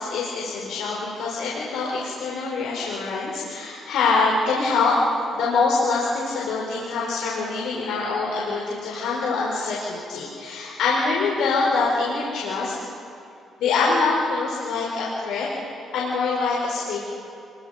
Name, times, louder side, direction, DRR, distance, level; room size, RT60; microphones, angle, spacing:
voice 1, 0.0-5.0 5.3-12.7 13.6-17.0, left 4 dB, 85° left, -5 dB, 5.0 m, -24 dB
28.0 x 23.5 x 5.2 m, 2.7 s
cardioid pair, 90°, 0 cm